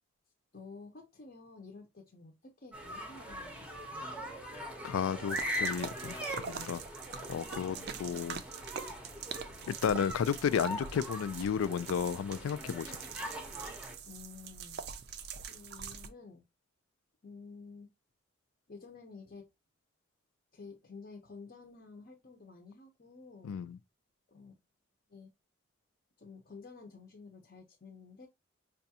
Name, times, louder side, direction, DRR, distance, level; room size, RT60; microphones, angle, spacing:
voice 1, 0.5-4.3 7.7-8.4 13.7-16.4 17.2-17.9 18.7-19.5 20.5-23.5 24.3-24.5 25.1-25.3 26.2-28.3, left 4 dB, 45° left, 0.6 m, -52 dB
sound 1, 2.7-13.9, equal, 5° right, 0.6 m, -41 dB
voice 2, 4.8-6.8 7.3-8.4 9.7-13.0 23.4-23.8, left 7 dB, 85° left, 0.3 m, -33 dB
sound 2, 5.3-16.1, right 6 dB, 55° right, 0.4 m, -44 dB
5.0 x 2.3 x 2.7 m
head